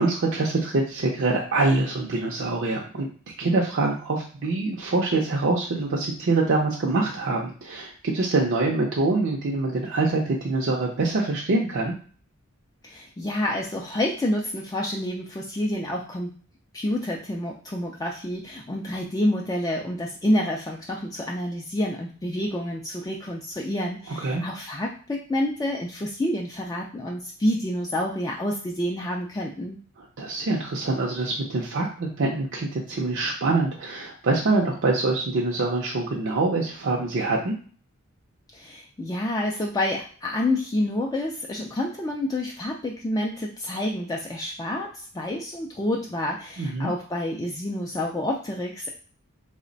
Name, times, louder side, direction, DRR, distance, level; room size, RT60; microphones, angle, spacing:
voice 1, 0.0-3.1 3.4-11.9 24.1-24.4 30.0-37.6 46.6-46.9, right 3 dB, 60° right, -1 dB, 0.5 m, -25 dB
voice 2, 12.8-16.3 16.7-29.8 38.5-48.9, left 1 dB, 15° left, -1 dB, 0.3 m, -28 dB
3.2 x 2.1 x 3.9 m, 0.43 s
head